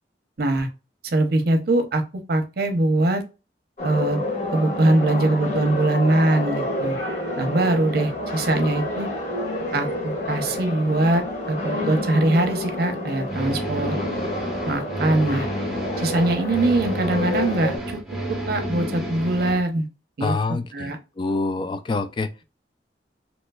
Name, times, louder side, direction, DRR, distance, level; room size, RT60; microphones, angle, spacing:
voice 1, 0.4-0.7 1.0-2.0 2.3-3.2 3.8-4.2 4.5-7.0 7.4-9.1 9.7-13.9 14.7-15.5 16.0-18.0 18.5-19.9 20.2-21.0, right 2 dB, 60° right, 0.7 m, -22 dB
sound 1, 3.8-17.8, left 1 dB, 40° left, 1.4 m, -29 dB
sound 2, 13.3-19.6, equal, ahead, 0.8 m, -30 dB
voice 2, 20.2-20.9 21.2-22.3, left 3 dB, 25° left, 0.3 m, -26 dB
3.1 x 3.0 x 2.2 m
head